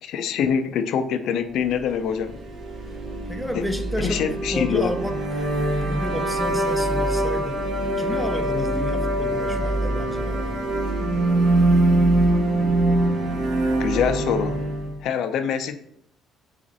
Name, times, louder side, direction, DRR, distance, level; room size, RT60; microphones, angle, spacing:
voice 1, 0.0-2.4 4.0-4.9 13.8-14.6 15.0-15.7, left 7 dB, 70° left, 0.4 m, -24 dB
sound 1, 2.0-15.0, right 1 dB, 50° right, 1.1 m, -23 dB
voice 2, 3.3-5.5 5.8-7.7 8.0-10.7, equal, ahead, 0.4 m, -31 dB
4.0 x 2.5 x 3.8 m
cardioid pair, 105°, 0 cm